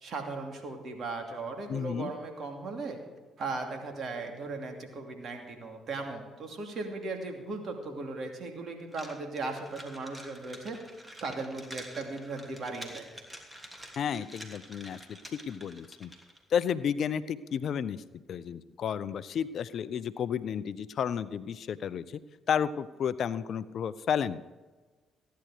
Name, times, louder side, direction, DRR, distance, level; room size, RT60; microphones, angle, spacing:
voice 1, 0.0-3.0 3.4-10.8 11.2-13.1, right 3 dB, 55° right, 3 dB, 2.6 m, -37 dB
voice 2, 1.7-2.1 14.0-15.0 15.3-16.1 16.5-18.0 18.3-22.2 22.5-24.4, left 8 dB, 60° left, 16 dB, 0.5 m, -32 dB
sound 1, 8.9-16.4, equal, 15° right, 2.9 m, -48 dB
15.5 x 10.5 x 4.9 m, 1.3 s
hypercardioid pair, 50°, 0 cm